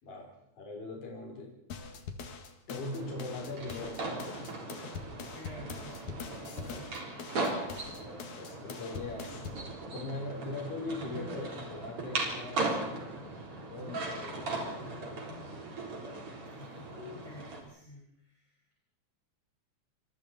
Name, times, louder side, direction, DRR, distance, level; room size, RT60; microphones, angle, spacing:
voice 1, 0.0-1.5 2.7-4.3 7.8-9.4 9.9-13.1 13.7-15.4, left 2 dB, 50° left, 0 dB, 4.5 m, -41 dB
sound 1, 1.7-9.7, left 5 dB, 75° left, 3.3 m, -44 dB
sound 2, 2.7-17.6, right 2 dB, 45° right, 4.8 m, -38 dB
voice 2, 5.3-7.2 16.4-18.7, left 2 dB, 10° left, -2 dB, 4.9 m, -51 dB
26.5 x 26.0 x 4.3 m, 0.79 s
omnidirectional pair, 3.4 m